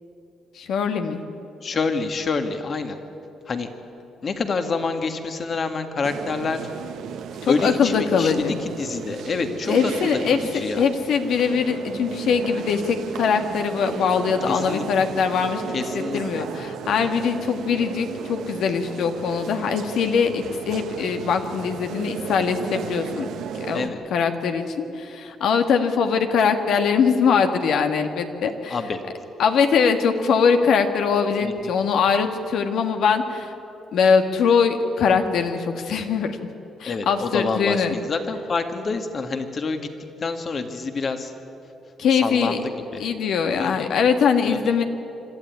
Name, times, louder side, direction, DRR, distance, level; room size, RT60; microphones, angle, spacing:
voice 1, 0.6-1.2 7.4-8.6 9.7-10.4 10.8-15.6 15.9-23.3 23.7-28.8 29.4-33.5 33.9-36.4 36.8-38.0 42.0-42.6 43.0-44.8, left 6 dB, 75° left, 6 dB, 1.7 m, -22 dB
voice 2, 1.6-3.0 3.5-3.7 4.2-6.7 7.5-10.8 14.5-15.1 15.7-16.5 23.7-24.0 28.7-29.0 31.4-31.7 36.8-39.9 40.2-41.3 42.1-43.0 43.6-43.9 44.5-44.7, left 4 dB, 45° left, 7 dB, 2.0 m, -27 dB
sound 1, 6.0-23.9, right 7 dB, 80° right, 1.2 m, -34 dB
25.5 x 12.5 x 9.6 m, 2.8 s
cardioid pair, 90°, 0 cm